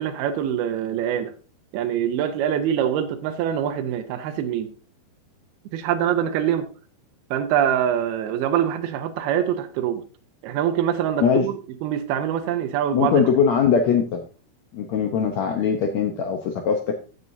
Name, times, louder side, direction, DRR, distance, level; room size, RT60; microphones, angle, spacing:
voice 1, 0.0-1.3 1.7-4.7 5.7-6.7 7.3-10.0 10.4-13.2, right 9 dB, 85° right, 2.8 m, -24 dB
voice 2, 12.9-14.2 14.7-17.0, left 7 dB, 80° left, 1.5 m, -21 dB
15.5 x 7.7 x 2.7 m
omnidirectional pair, 4.4 m